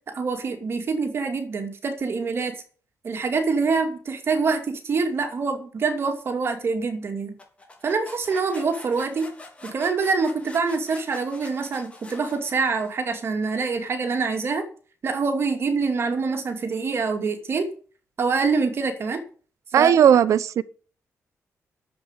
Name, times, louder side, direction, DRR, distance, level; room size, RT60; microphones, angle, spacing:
voice 1, 0.1-2.6 3.0-7.3 7.8-9.3 9.6-14.7 15.0-17.7 18.2-19.2 19.8-19.9, right 4 dB, 50° right, 2.4 m, -25 dB
sound 1, 7.4-13.1, left 2 dB, 20° left, 3.5 m, -45 dB
voice 2, 19.7-20.6, right 9 dB, 75° right, 0.8 m, -16 dB
10.5 x 7.8 x 9.6 m
cardioid pair, 125°, 5 cm